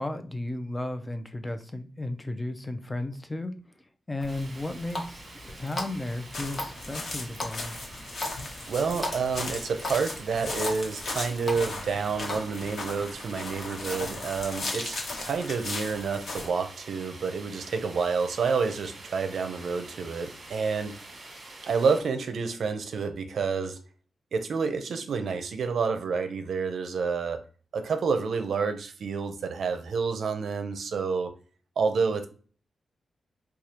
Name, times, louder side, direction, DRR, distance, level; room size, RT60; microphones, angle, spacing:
voice 1, 0.0-5.3 5.6-7.8, left 2 dB, 15° left, 0.5 m, -34 dB
Water tap faucet, 4.2-12.4, left 2 dB, 35° left, 0.9 m, -39 dB
sound 1, 4.3-22.0, right 2 dB, 45° right, 1.2 m, -47 dB
sound 2, 6.3-16.5, left 2 dB, 60° left, 1.1 m, -37 dB
voice 2, 8.7-21.0 21.6-23.8 24.3-27.4 27.7-31.3 31.8-32.3, right 5 dB, 70° right, 0.5 m, -29 dB
4.7 x 2.3 x 2.9 m
wide cardioid pair, 120°, 0 cm